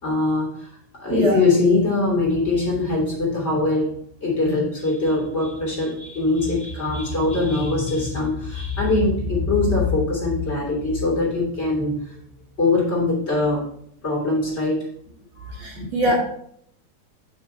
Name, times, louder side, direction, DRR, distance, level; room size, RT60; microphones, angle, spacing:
voice 1, 0.0-3.9 4.2-12.1 12.6-13.6 14.0-14.8 15.7-15.9, left 3 dB, 20° left, -5 dB, 2.8 m, -22 dB
voice 2, 1.1-1.4 15.5-16.1, equal, 50° right, -3 dB, 2.4 m, -22 dB
7.4 x 5.4 x 4.4 m, 0.67 s
omnidirectional pair, 4.5 m